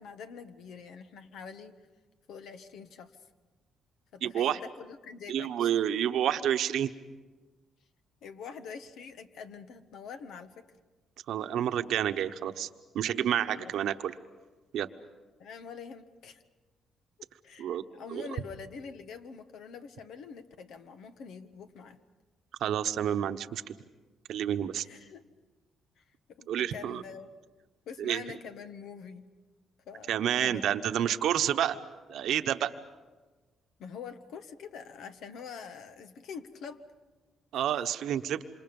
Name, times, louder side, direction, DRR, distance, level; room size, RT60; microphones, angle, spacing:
voice 1, 0.0-1.7 2.3-3.1 4.1-5.7 8.2-10.7 13.5-13.7 15.4-16.4 17.4-22.0 24.8-25.3 26.0-26.1 26.3-27.3 27.9-29.2 29.9-30.9 33.8-36.8 37.5-37.6, left 6 dB, 80° left, 9 dB, 1.4 m, -45 dB
voice 2, 4.2-4.6 5.3-6.9 11.3-12.7 12.9-14.1 14.7-14.9 17.6-17.8 18.1-18.3 22.6-23.6 24.3-24.8 26.5-27.0 28.0-28.4 30.1-31.8 32.1-32.7 37.5-38.4, right 10 dB, 75° right, 9 dB, 1.0 m, -29 dB
27.5 x 27.0 x 5.4 m, 1.3 s
cardioid pair, 90°, 0 cm